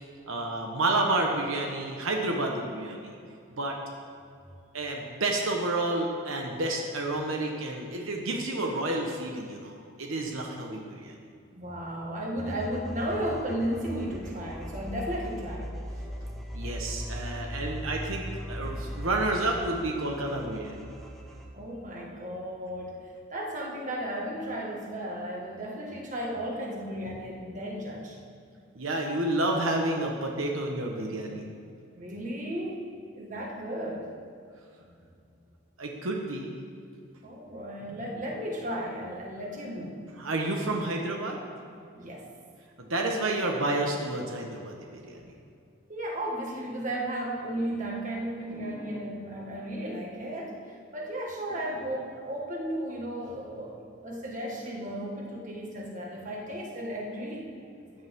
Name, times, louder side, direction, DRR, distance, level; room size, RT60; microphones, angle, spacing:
voice 1, 0.3-3.2 3.5-3.8 4.7-11.1 16.5-20.9 28.7-31.5 35.8-36.5 40.2-41.4 42.8-45.2, right 2 dB, 85° right, 1 dB, 1.2 m, -30 dB
voice 2, 11.6-15.7 21.5-23.0 23.3-28.2 31.9-32.8 33.1-34.1 34.8-34.9 37.2-40.0 41.9-42.3 45.9-50.6 50.9-58.1, right 1 dB, 40° right, -2 dB, 1.8 m, -34 dB
sound 1, 12.4-21.5, equal, ahead, 1.1 m, -38 dB
14.0 x 9.7 x 3.7 m, 2.4 s
head